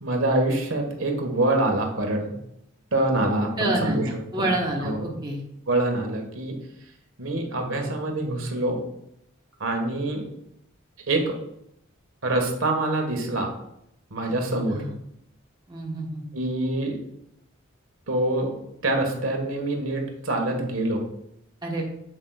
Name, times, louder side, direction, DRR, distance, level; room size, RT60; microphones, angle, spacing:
voice 1, 0.0-2.2 2.9-4.1 4.4-4.5 4.8-5.0 5.7-6.5 7.2-8.8 9.6-10.2 11.1-11.3 12.2-13.5 14.1-14.8 16.3-17.0 18.1-18.5 18.8-21.0, right 2 dB, 80° right, 2 dB, 1.5 m, -25 dB
voice 2, 3.6-5.4 14.7-14.9 15.7-16.2 21.6-21.8, right 1 dB, 20° right, -2 dB, 1.3 m, -28 dB
7.7 x 7.5 x 2.4 m, 0.76 s
head